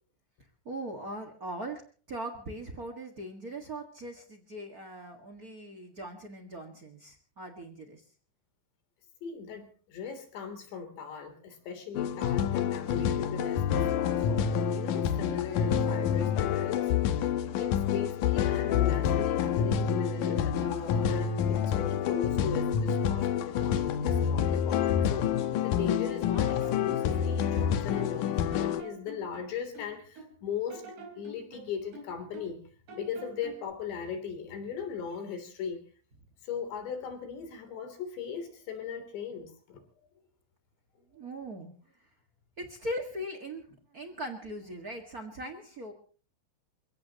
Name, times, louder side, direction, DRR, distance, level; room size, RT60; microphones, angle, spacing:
voice 1, 0.6-1.8 2.1-8.0 41.1-41.7 42.6-45.9, right 1 dB, 60° right, 5 dB, 0.9 m, -40 dB
voice 2, 9.2-16.9 17.2-17.3 17.6-25.3 25.6-30.8 31.2-32.6 33.0-35.9 36.4-39.8, left 6 dB, 90° left, 6 dB, 5.5 m, -38 dB
sound 1, 11.9-28.8, left 8 dB, 70° left, 2.0 m, -28 dB
sound 2, 25.0-26.0 26.3-28.3 28.5-30.4 30.7-32.6 32.9-33.7, right 2 dB, 80° right, 6.8 m, -47 dB
29.0 x 16.0 x 3.0 m, 0.40 s
omnidirectional pair, 4.9 m